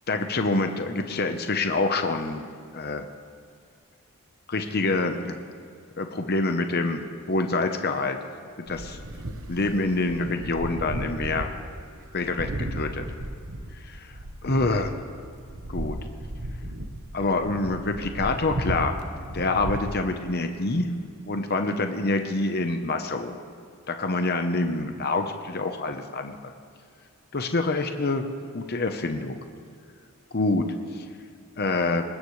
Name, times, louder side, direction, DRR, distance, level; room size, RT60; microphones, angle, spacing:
voice 1, 0.1-2.4 2.7-3.1 4.5-5.4 6.0-7.0 7.3-8.2 8.7-9.0 9.5-11.5 12.1-13.0 13.8-14.0 14.4-15.0 15.7-16.0 17.1-18.9 19.3-20.9 21.3-23.4 23.9-26.5 27.3-28.2 28.5-29.4 30.3-30.6 30.9-31.0 31.6-32.0, left 3 dB, 45° left, 6 dB, 0.9 m, -26 dB
sound 1, 8.7-19.8, right 1 dB, 65° right, 1.1 m, -35 dB
21.0 x 19.0 x 3.2 m, 2.3 s
head